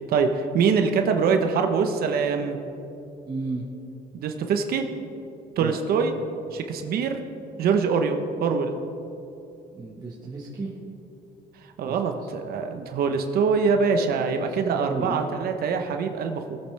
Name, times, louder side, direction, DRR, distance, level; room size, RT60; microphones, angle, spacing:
voice 1, 0.1-2.6 4.1-4.9 5.6-6.1 6.5-7.2 7.6-8.7 11.8-16.6, right 5 dB, 65° right, 5 dB, 1.0 m, -24 dB
voice 2, 3.3-3.6 5.6-5.8 9.7-10.7 11.8-12.0 14.3-15.3, right 3 dB, 25° right, -4 dB, 1.4 m, -33 dB
19.5 x 8.3 x 3.4 m, 2.8 s
cardioid pair, 110°, 17 cm